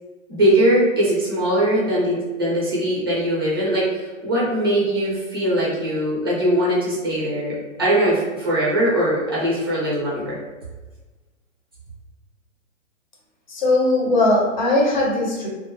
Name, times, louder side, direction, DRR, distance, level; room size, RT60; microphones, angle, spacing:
voice 1, 0.3-10.4, right 1 dB, 20° right, -6 dB, 0.4 m, -21 dB
voice 2, 13.5-15.5, left 2 dB, 35° left, -3 dB, 0.7 m, -19 dB
2.4 x 2.1 x 2.8 m, 1.2 s
hypercardioid pair, 170°, 40 cm